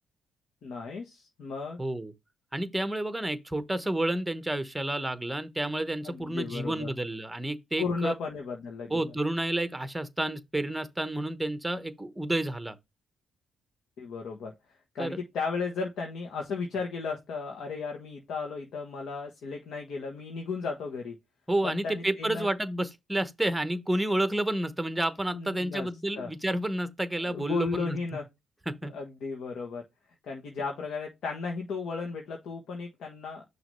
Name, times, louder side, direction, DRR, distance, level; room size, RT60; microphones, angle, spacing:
voice 1, 0.6-1.8 6.0-6.9 7.8-9.1 14.0-14.5 14.9-21.2 21.6-22.5 25.3-25.9 26.1-26.3 27.2-28.2 28.9-29.8 30.2-33.6, left 4 dB, 70° left, 1.4 m, -35 dB
voice 2, 1.8-2.1 2.5-8.1 8.9-12.8 15.0-15.2 21.5-28.0 28.7-28.9, right 1 dB, 5° right, 1.0 m, -30 dB
6.1 x 3.0 x 5.5 m
cardioid pair, 90°, 0 cm